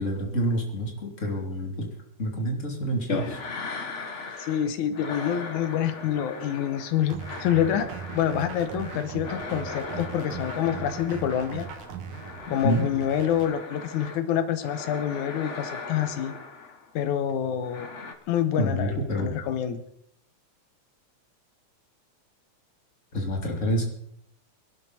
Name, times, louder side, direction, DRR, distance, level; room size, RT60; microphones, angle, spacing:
voice 1, 0.0-1.9 2.2-3.4 12.6-12.8 18.6-19.3 23.1-23.9, equal, 25° left, 1 dB, 2.9 m, -27 dB
sound 1, 3.1-4.7 4.9-14.2 14.6-16.9 17.6-18.1, left 4 dB, 60° left, 0.7 m, -38 dB
voice 2, 4.4-11.7 12.5-16.3 17.0-17.9 18.3-19.8, left 9 dB, 85° left, 10 dB, 2.4 m, -27 dB
sound 2, 7.1-13.5, right 7 dB, 75° right, 3.0 m, -39 dB
24.0 x 12.0 x 4.1 m, 0.73 s
omnidirectional pair, 3.4 m